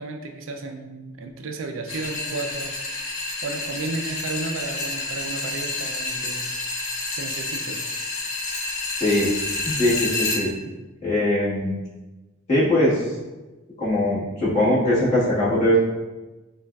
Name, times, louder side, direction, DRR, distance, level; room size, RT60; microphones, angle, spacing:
voice 1, 0.0-2.8 3.4-6.5 7.2-7.8, right 3 dB, 65° right, 4 dB, 0.4 m, -33 dB
sound 1, 1.9-10.4, left 3 dB, 75° left, 0.9 m, -29 dB
voice 2, 9.0-10.5 11.0-11.8 12.5-13.0 13.8-15.8, left 1 dB, 35° left, -9 dB, 1.5 m, -21 dB
5.1 x 2.4 x 2.3 m, 1.1 s
head